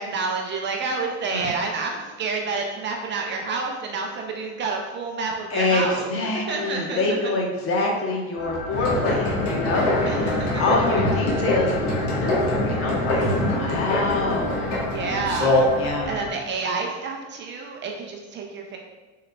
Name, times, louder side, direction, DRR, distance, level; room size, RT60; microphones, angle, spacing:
voice 1, 0.0-6.1 6.5-7.3 10.0-10.6 14.9-18.8, right 4 dB, 30° right, 2 dB, 0.5 m, -29 dB
voice 2, 5.5-5.8 6.1-14.6 15.8-16.2, left 2 dB, 40° left, 0 dB, 1.0 m, -26 dB
sound 1, 8.4-16.3, left 2 dB, ahead, 1.1 m, -34 dB
sound 2, 8.7-15.9, left 1 dB, 75° left, 1.2 m, -24 dB
3.9 x 3.8 x 2.2 m, 1.2 s
supercardioid pair, 100°, 35 cm